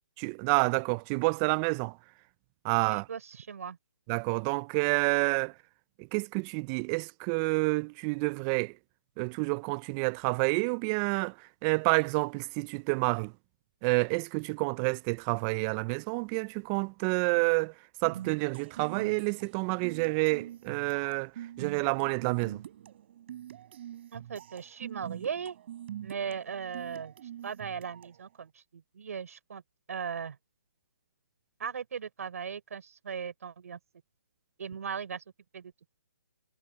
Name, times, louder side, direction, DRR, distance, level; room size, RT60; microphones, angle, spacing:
voice 1, 0.2-2.0 2.6-3.1 4.1-5.5 6.0-8.7 9.2-11.3 11.6-13.3 13.8-17.7 18.0-21.3 21.6-22.6, right 31 dB, 20° right, 0.4 m, -29 dB
voice 2, 2.9-3.8 24.1-25.6 26.0-27.1 27.4-29.6 29.9-30.4 31.6-33.8 34.6-35.2 35.5-35.7, right 7 dB, 55° right, 5.5 m, -38 dB
sound 1, 18.0-28.3, right 11 dB, 40° right, 4.5 m, -44 dB
figure-of-eight pair, 145°, 9 cm